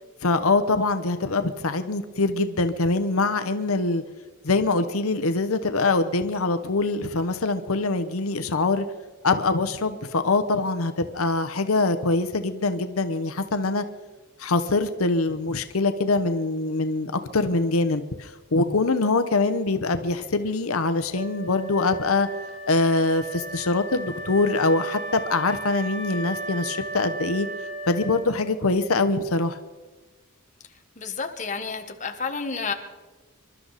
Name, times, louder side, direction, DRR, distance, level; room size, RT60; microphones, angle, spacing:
voice 1, 0.2-4.0 4.4-8.8 9.2-13.8 14.4-22.3 22.7-27.5 27.9-29.6, left 3 dB, 80° left, 9 dB, 0.9 m, -24 dB
Wind instrument woodwind instrument, 21.1-28.7, right 1 dB, 35° right, 4.6 m, -35 dB
voice 2, 31.0-32.7, left 5 dB, 35° left, 4 dB, 1.4 m, -30 dB
27.0 x 12.5 x 4.1 m, 1.3 s
head